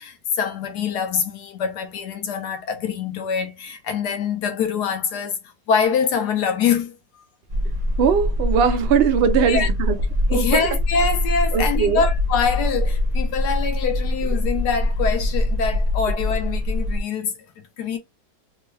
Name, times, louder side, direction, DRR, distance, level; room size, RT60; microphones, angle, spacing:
voice 1, 0.0-5.4 5.7-6.9 9.4-9.7 10.3-18.0, left 6 dB, 80° left, 1.4 m, -24 dB
sound 1, 7.5-17.0, left 1 dB, 25° right, 0.8 m, -23 dB
voice 2, 8.0-10.0 10.3-10.5 11.5-12.0, right 7 dB, 80° right, 0.5 m, -20 dB
3.5 x 2.3 x 3.1 m
omnidirectional pair, 1.7 m